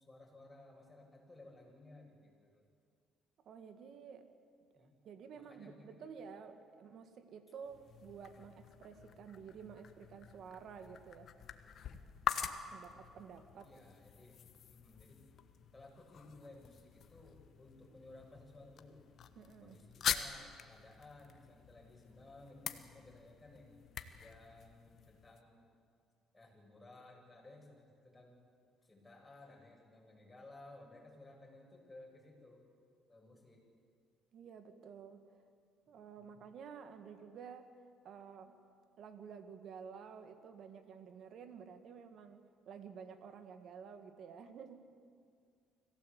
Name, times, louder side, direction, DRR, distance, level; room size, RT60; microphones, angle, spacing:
voice 1, 0.0-2.6 4.7-4.9 5.4-6.0 13.6-15.2 15.7-19.0 19.6-23.8 24.2-25.7 26.3-28.4 28.8-32.6 33.1-33.7, left 2 dB, 15° left, -1 dB, 7.3 m, -57 dB
voice 2, 3.4-4.3 4.7-11.3 12.7-13.7 19.4-19.8 34.3-35.3 35.9-37.7 38.0-38.6 39.0-44.9, right 6 dB, 60° right, 8 dB, 1.9 m, -51 dB
sound 1, 7.6-25.4, left 8 dB, 55° left, 1.3 m, -45 dB
25.5 x 16.5 x 8.4 m, 2.2 s
cardioid pair, 85°, 0 cm